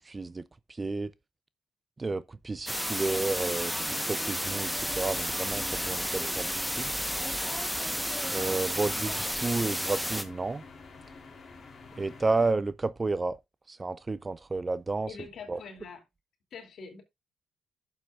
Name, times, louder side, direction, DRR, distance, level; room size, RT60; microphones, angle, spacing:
voice 1, 0.1-1.1 2.0-6.9 8.3-10.6 12.0-13.4 13.7-15.1 15.5-15.6, right 3 dB, 25° right, 0.5 m, -31 dB
sound 1, 2.7-10.2, equal, ahead, 1.1 m, -32 dB
sound 2, 2.9-12.5, left 4 dB, 45° left, 3.3 m, -49 dB
voice 2, 15.1-16.0 16.5-17.0, left 5 dB, 60° left, 2.8 m, -44 dB
11.5 x 7.2 x 2.4 m
cardioid pair, 90°, 0 cm